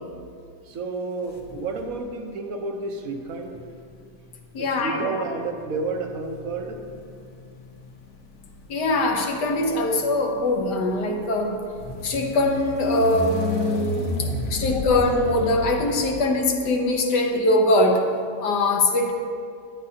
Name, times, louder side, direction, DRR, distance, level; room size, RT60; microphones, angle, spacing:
voice 1, 0.6-3.6 4.6-6.9, right 3 dB, 60° right, 4 dB, 1.3 m, -31 dB
sound 1, 1.3-2.0 3.1-16.8, left 2 dB, 60° left, 1.3 m, -34 dB
voice 2, 4.5-5.2 8.7-11.6 12.0-14.2 14.5-18.0 18.4-19.1, left 2 dB, 80° left, 2 dB, 1.6 m, -22 dB
14.5 x 10.0 x 2.8 m, 2.3 s
omnidirectional pair, 1.8 m